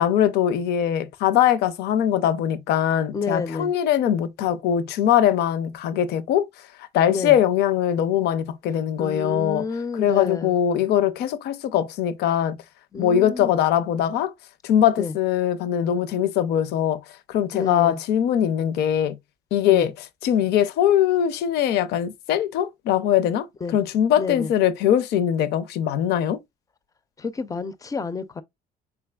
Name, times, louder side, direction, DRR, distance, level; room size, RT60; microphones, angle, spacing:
voice 1, 0.0-6.5 6.9-9.6 10.0-12.6 13.0-14.3 14.6-17.0 17.3-19.2 19.5-19.9 20.2-23.5 23.7-26.4, left 10 dB, 75° left, 0.5 m, -21 dB
voice 2, 3.1-3.7 7.1-7.4 9.0-10.6 12.9-13.6 15.0-15.2 17.5-18.0 19.7-19.9 23.6-23.8 24.2-24.5 27.2-28.4, left 4 dB, 20° left, 0.4 m, -29 dB
3.7 x 3.4 x 2.2 m
cardioid pair, 110°, 17 cm